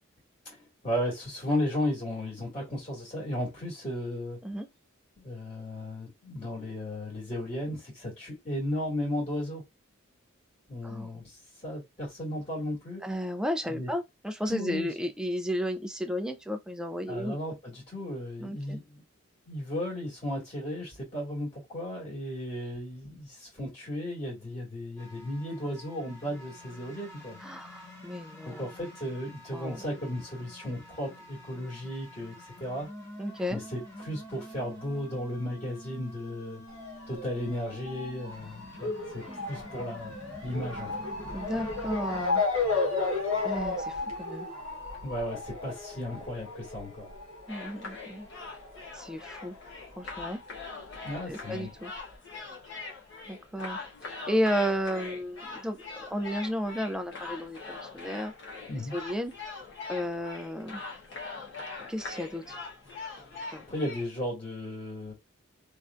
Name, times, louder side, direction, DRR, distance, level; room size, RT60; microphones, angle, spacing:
voice 1, 0.8-4.4 5.2-9.6 10.7-11.3 11.6-13.0 13.6-13.9 14.5-14.9 17.1-19.0 19.5-27.4 28.4-32.3 32.6-32.9 33.5-36.6 37.1-40.1 40.4-40.9 45.0-47.1 51.0-51.7 58.7-58.9 63.3-65.1, left 1 dB, 30° left, 2.1 m, -35 dB
voice 2, 13.0-17.4 18.4-18.8 27.4-28.6 29.5-29.8 33.2-33.6 39.3-39.5 41.3-42.4 43.4-44.5 47.5-48.3 48.9-49.6 50.0-50.4 51.3-51.9 53.3-58.3 58.9-59.3 59.9-60.8 61.9-62.6 63.5-63.6, equal, 5° right, 0.4 m, -33 dB
sound 1, 25.0-42.3, left 1 dB, 15° left, 1.2 m, -48 dB
Motor vehicle (road) / Siren, 36.7-49.7 50.0-51.1 51.8-51.9 52.1-52.2, left 3 dB, 75° left, 1.3 m, -34 dB
sound 2, 47.5-64.1, left 3 dB, 60° left, 1.1 m, -42 dB
3.3 x 2.6 x 2.4 m
head